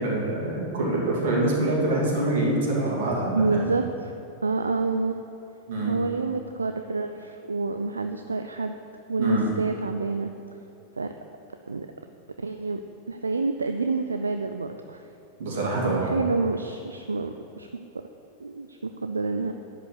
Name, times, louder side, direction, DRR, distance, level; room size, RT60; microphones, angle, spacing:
voice 1, 0.0-3.6 5.7-5.9 9.2-9.5 15.4-16.1, right 1 dB, 55° right, -4 dB, 2.7 m, -25 dB
voice 2, 3.3-4.1 4.4-5.2 5.9-8.8 9.1-10.3 11.0-11.1 11.7-11.9 12.4-12.8 13.1-15.0 15.8-17.7 17.9-18.0 18.4-19.5, right 3 dB, 75° right, 7 dB, 0.4 m, -28 dB
11.0 x 5.0 x 8.1 m, 2.7 s
figure-of-eight pair, 90°, 0 cm